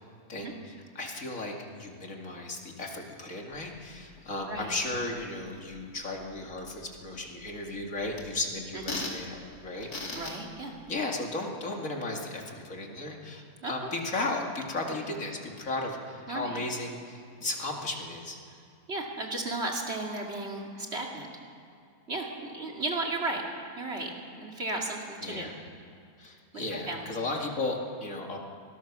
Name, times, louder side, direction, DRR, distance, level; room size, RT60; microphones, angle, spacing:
voice 1, 0.3-1.5 1.8-9.9 10.9-18.4 25.2-25.6 26.2-28.4, left 2 dB, 60° left, 1 dB, 2.7 m, -35 dB
sound 1, 3.5-10.9, left 2 dB, 80° left, 3.1 m, -43 dB
voice 2, 8.7-9.1 10.1-10.7 13.6-13.7 16.3-16.6 18.9-21.3 22.1-23.4 23.8-25.5 26.5-27.1, right 2 dB, 45° right, 0 dB, 2.6 m, -35 dB
24.5 x 19.5 x 6.1 m, 2.5 s
omnidirectional pair, 1.6 m